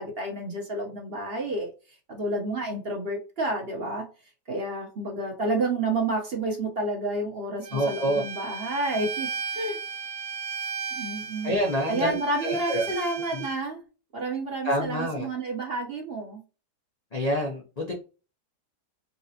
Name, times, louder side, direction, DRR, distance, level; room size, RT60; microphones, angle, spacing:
voice 1, 0.0-4.0 4.5-9.3 9.5-9.8 10.9-11.5 11.9-13.8 14.1-16.4, right 2 dB, 40° right, 1 dB, 1.0 m, -30 dB
Bowed string instrument, 7.6-13.6, right 5 dB, 65° right, 0.9 m, -35 dB
voice 2, 7.7-8.2 11.4-12.9 13.3-13.4 14.6-15.3 17.1-17.9, equal, 40° left, 0 dB, 0.5 m, -27 dB
4.0 x 3.8 x 2.8 m, 0.34 s
omnidirectional pair, 1.8 m